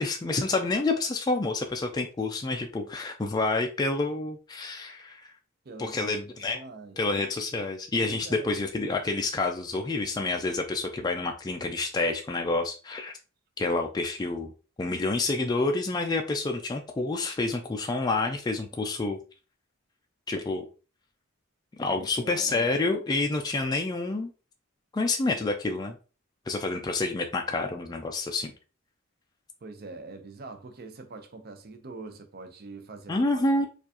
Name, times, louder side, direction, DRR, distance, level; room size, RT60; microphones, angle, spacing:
voice 1, 0.0-5.3 5.8-6.6 7.0-13.1 13.6-14.5 14.8-19.2 20.3-20.7 21.8-24.3 24.9-26.0 26.5-28.5 33.1-33.7, left 3 dB, 20° left, 0.3 m, -28 dB
voice 2, 5.6-7.0 8.0-8.6 21.9-22.7 29.6-33.7, right 3 dB, 50° right, 0.6 m, -44 dB
4.4 x 2.5 x 2.7 m
head